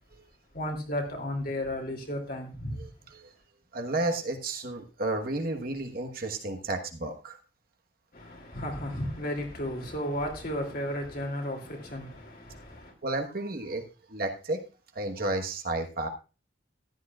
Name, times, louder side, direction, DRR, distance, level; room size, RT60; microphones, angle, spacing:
voice 1, 0.5-2.8 8.1-12.9, left 1 dB, 50° left, 2.7 m, -34 dB
voice 2, 3.7-7.4 13.0-13.8 14.1-14.6 14.9-16.1, right 2 dB, 50° right, 1.3 m, -32 dB
14.5 x 11.5 x 2.4 m
head